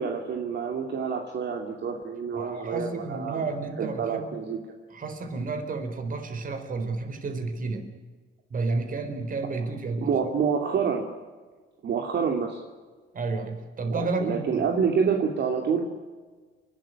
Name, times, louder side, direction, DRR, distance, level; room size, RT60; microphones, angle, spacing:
voice 1, 0.0-3.4 3.8-4.6 10.0-11.0 11.8-12.6 13.9-15.8, right 6 dB, 55° right, 2 dB, 2.7 m, -27 dB
voice 2, 2.3-4.3 4.9-7.9 8.5-10.1 13.1-14.6, right 3 dB, 40° right, 7 dB, 4.3 m, -31 dB
30.0 x 12.5 x 9.8 m, 1.4 s
cardioid pair, 120°, 21 cm